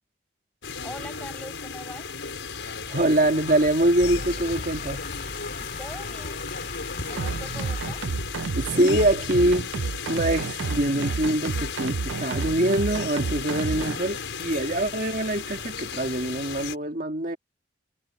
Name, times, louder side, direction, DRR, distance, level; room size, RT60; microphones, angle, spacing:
sound 1, 0.6-16.8, left 5 dB, 80° left, 5.5 m, -35 dB
voice 1, 0.8-2.1 5.8-6.5 7.1-8.0, left 1 dB, 5° left, 5.2 m, -42 dB
voice 2, 2.9-5.1 7.0-7.2 8.5-17.4, right 1 dB, 45° right, 2.1 m, -24 dB
sound 2, 4.0-8.9, left 3 dB, 45° left, 3.2 m, -39 dB
sound 3, 7.2-14.0, right 5 dB, 85° right, 0.5 m, -30 dB
head